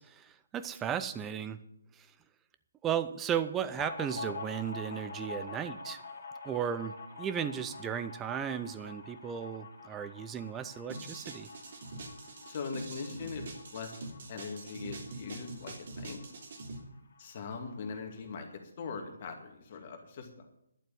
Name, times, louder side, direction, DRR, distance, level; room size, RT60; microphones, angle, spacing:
voice 1, 0.0-1.6 2.0-2.1 2.8-6.0 6.4-11.5, right 8 dB, 10° right, 12 dB, 0.6 m, -35 dB
sound 1, 3.7-16.9 17.2-17.3 17.5-18.3, left 3 dB, 50° left, 2.7 m, -46 dB
sound 2, 10.9-16.8, right 2 dB, 45° right, 2.7 m, -44 dB
voice 2, 12.5-13.5 13.7-14.0 14.3-16.2 17.2-18.5 18.8-20.5, left 5 dB, 35° left, 4 dB, 2.2 m, -41 dB
11.5 x 7.5 x 8.6 m, 0.80 s
figure-of-eight pair, 140°, 0 cm